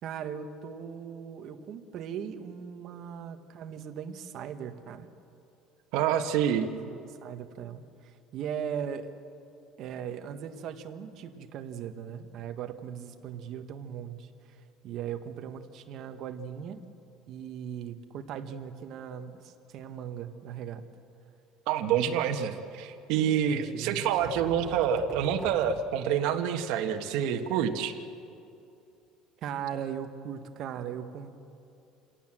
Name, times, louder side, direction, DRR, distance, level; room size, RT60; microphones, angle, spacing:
voice 1, 0.0-5.1 6.8-9.1 9.8-14.6 14.8-16.8 17.3-20.8 23.5-24.3 29.4-31.4, right 8 dB, 45° right, 7 dB, 1.4 m, -39 dB
voice 2, 5.9-6.7 21.7-27.9, right 8 dB, 65° right, 5 dB, 1.5 m, -27 dB
sound 1, 23.9-26.7, right 4 dB, 15° right, 0.8 m, -45 dB
27.5 x 17.5 x 7.6 m, 2.7 s
cardioid pair, 165°, 0 cm